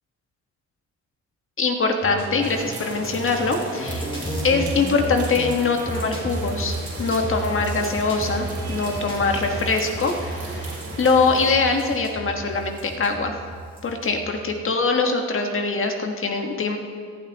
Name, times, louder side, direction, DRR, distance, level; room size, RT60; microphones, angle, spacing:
voice 1, 1.6-4.1 4.4-13.4 13.8-16.8, left 4 dB, 45° left, 4 dB, 1.5 m, -23 dB
sound 1, 2.0-14.5, right 1 dB, 15° left, 2.7 m, -32 dB
sound 2, 2.4-11.6, right 3 dB, 50° right, 2.9 m, -37 dB
17.5 x 11.5 x 3.0 m, 2.1 s
cardioid pair, 90°, 30 cm